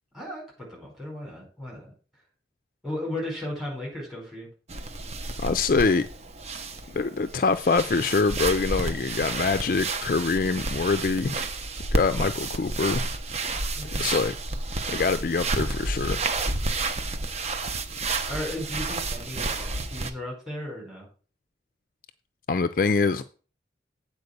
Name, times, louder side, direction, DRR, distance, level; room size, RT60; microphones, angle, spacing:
voice 1, 0.1-1.9 2.8-4.5 13.8-14.0 18.2-21.1, left 1 dB, ahead, 4.5 m, -35 dB
sound 1, 4.7-20.1, right 3 dB, 35° right, 0.7 m, -31 dB
voice 2, 5.4-6.1 6.9-11.4 11.9-13.1 13.9-14.3 14.9-16.2 22.5-23.2, left 4 dB, 50° left, 0.4 m, -24 dB
8.2 x 4.6 x 6.6 m
head